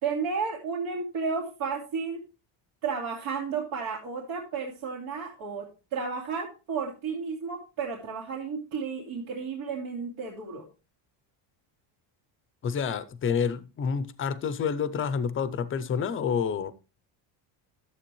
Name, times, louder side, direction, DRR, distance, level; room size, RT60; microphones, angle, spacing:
voice 1, 0.0-2.2 2.8-5.7 5.9-10.6, right 5 dB, 75° right, 2.6 m, -32 dB
voice 2, 12.6-16.7, left 6 dB, 25° left, 0.5 m, -28 dB
11.5 x 7.6 x 3.1 m
cardioid pair, 170°, 50 cm